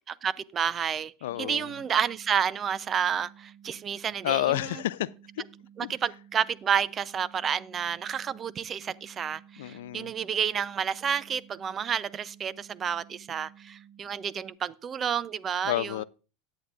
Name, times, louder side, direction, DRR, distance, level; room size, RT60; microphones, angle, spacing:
voice 1, 0.1-1.1 1.4-4.6 5.8-15.9, right 8 dB, 30° right, 0.5 m, -30 dB
voice 2, 1.2-1.7 4.2-5.4 5.8-5.9 9.6-10.1 15.6-16.0, left 14 dB, 80° left, 0.4 m, -30 dB
sound 1, 1.3-14.6, right 9 dB, 60° right, 1.0 m, -54 dB
13.5 x 8.9 x 2.4 m
supercardioid pair, 120°, 0 cm